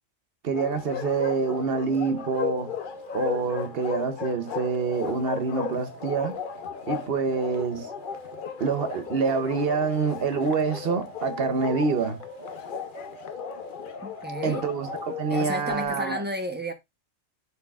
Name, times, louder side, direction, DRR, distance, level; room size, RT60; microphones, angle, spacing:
voice 1, 0.4-2.7 3.1-6.4 6.9-7.9 8.6-12.2 14.4-16.2, right 5 dB, 55° right, 0.9 m, -26 dB
Bark, 0.5-15.9, left 7 dB, 50° left, 0.8 m, -36 dB
sound 1, 1.7-15.7, equal, 85° right, 2.2 m, -44 dB
voice 2, 14.0-14.7 15.3-16.7, equal, 10° right, 0.7 m, -32 dB
11.0 x 4.3 x 2.3 m
omnidirectional pair, 1.3 m